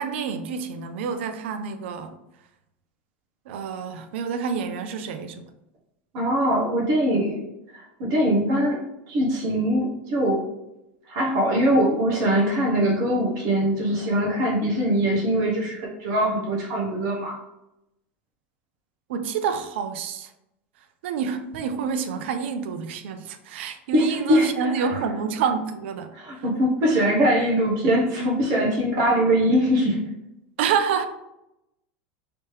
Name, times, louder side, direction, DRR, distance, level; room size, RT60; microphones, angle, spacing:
voice 1, 0.0-2.1 3.5-5.5 19.1-20.3 21.0-26.1 30.6-31.1, right 6 dB, 75° right, 0.4 m, -28 dB
voice 2, 6.1-7.4 7.7-8.8 9.1-10.4 11.1-17.4 23.9-25.0 26.1-30.0, equal, 55° right, 0.9 m, -22 dB
3.3 x 2.8 x 3.1 m
hypercardioid pair, 100°, 6 cm